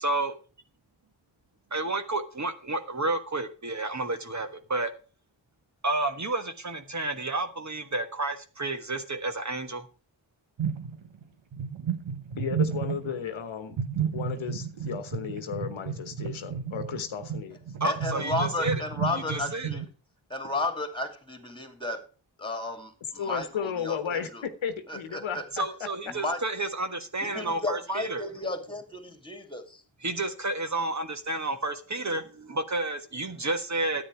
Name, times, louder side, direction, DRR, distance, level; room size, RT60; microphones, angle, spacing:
voice 1, 0.0-0.3 1.7-4.9 5.8-9.9 17.8-18.7 19.1-19.7 25.5-28.3 30.0-34.0, right 2 dB, 35° right, 1.4 m, -31 dB
sound 1, 10.6-11.2 11.5-13.2 13.7-19.9, right 7 dB, 80° right, 1.3 m, -32 dB
voice 2, 12.4-17.6 23.1-25.9, left 7 dB, 85° left, 1.1 m, -34 dB
voice 3, 17.8-19.9 20.3-22.1 22.4-24.4 24.9-25.5 26.0-26.4 27.2-29.8, left 2 dB, 10° left, 2.5 m, -33 dB
10.0 x 8.8 x 4.6 m
cardioid pair, 40°, 46 cm